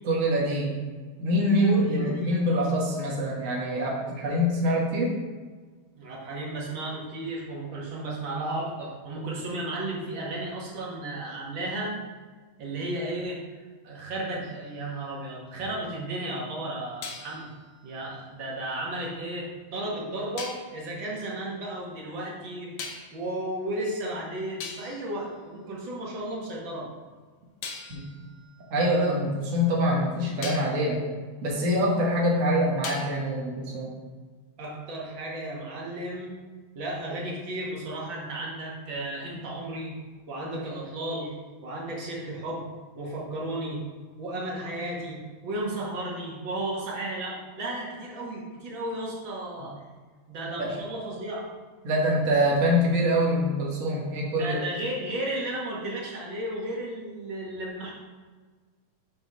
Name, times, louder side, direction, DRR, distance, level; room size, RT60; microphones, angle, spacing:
voice 1, 0.0-0.7 1.2-5.1 27.9-28.1 28.7-31.0 31.4-33.9 50.6-50.7 51.8-54.6, equal, 75° right, -3 dB, 0.7 m, -25 dB
voice 2, 1.6-2.5 6.0-11.9 12.6-13.4 13.8-17.5 17.8-22.8 23.1-26.9 34.6-36.3 36.7-39.9 40.3-41.3 41.6-42.6 43.0-43.8 44.2-49.7 50.3-51.5 54.4-57.9, right 1 dB, 50° right, -3 dB, 1.7 m, -34 dB
sound 1, 14.4-15.8 17.0-19.1 20.4-20.8 22.8-23.3 24.1-24.2 24.6-26.2 27.6-29.8 30.4-30.8 32.8-33.4, left 5 dB, 75° left, 1.9 m, -43 dB
6.2 x 4.5 x 5.5 m, 1.4 s
omnidirectional pair, 3.4 m